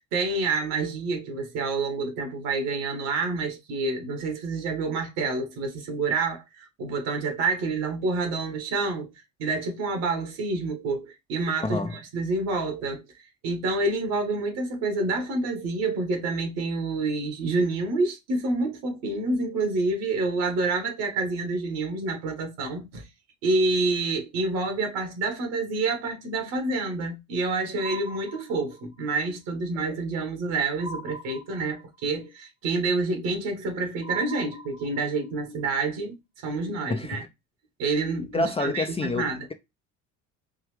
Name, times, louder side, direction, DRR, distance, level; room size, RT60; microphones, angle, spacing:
voice 1, 0.0-9.1 9.4-13.1 13.4-23.0 23.4-36.2 36.4-37.2 37.8-39.5, right 3 dB, 65° right, 1.9 m, -28 dB
voice 2, 11.6-12.0 36.9-37.3 38.3-39.5, left 3 dB, 15° left, 0.5 m, -28 dB
sound 1, 27.8-29.0 30.8-32.0 34.0-35.3, equal, 15° right, 0.9 m, -41 dB
4.6 x 2.7 x 3.2 m
hypercardioid pair, 70°, 41 cm